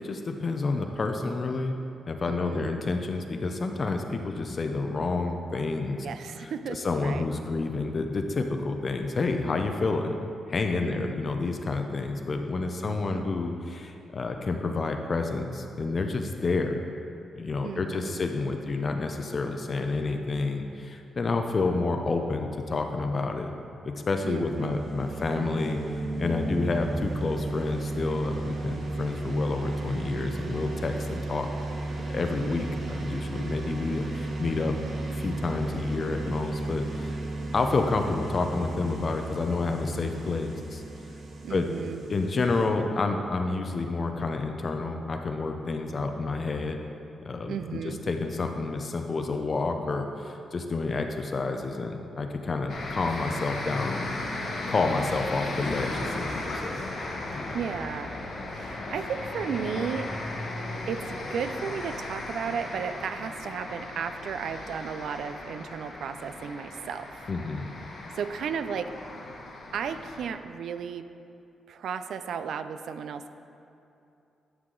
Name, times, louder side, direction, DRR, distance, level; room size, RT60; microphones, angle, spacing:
voice 1, 0.0-1.8 2.1-6.1 6.4-10.1 10.5-16.8 17.3-23.5 23.8-31.5 32.1-34.8 35.1-37.2 37.5-40.8 41.5-41.7 42.1-46.8 47.2-54.1 54.7-56.8 57.3-57.6 67.3-67.7, left 3 dB, 40° left, 5 dB, 0.5 m, -29 dB
voice 2, 2.3-2.7 6.0-7.2 10.8-11.2 12.8-13.3 17.6-18.2 24.2-24.8 41.4-42.0 47.5-48.0 57.5-58.1 58.5-60.1 60.8-67.3 68.1-68.9 69.7-71.0 71.7-73.3, right 7 dB, 75° right, 10 dB, 0.3 m, -34 dB
sound 1, 24.4-42.7, right 2 dB, 60° right, 1.0 m, -34 dB
sound 2, 52.7-70.3, left 2 dB, 65° left, 1.2 m, -36 dB
11.0 x 4.7 x 3.8 m, 2.8 s
cardioid pair, 100°, 0 cm